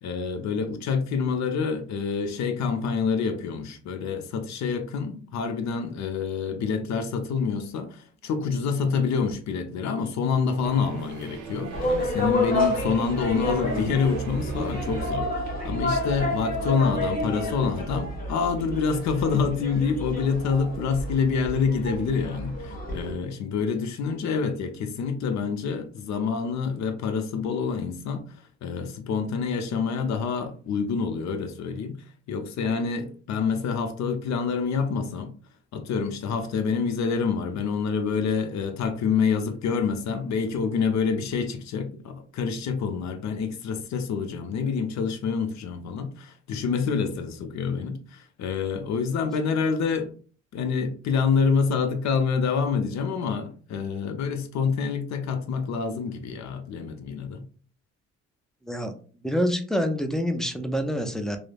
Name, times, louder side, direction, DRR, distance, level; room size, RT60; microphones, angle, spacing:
voice 1, 0.0-28.2 28.6-35.3 35.7-50.1 50.5-57.4, left 5 dB, 65° left, 0.6 m, -27 dB
sound 1, 10.6-15.2, right 6 dB, 85° right, 0.6 m, -39 dB
sound 2, 11.7-23.1, left 1 dB, 30° left, 1.2 m, -29 dB
voice 2, 59.2-61.4, equal, ahead, 0.3 m, -26 dB
3.1 x 2.0 x 2.3 m
cardioid pair, 90°, 30 cm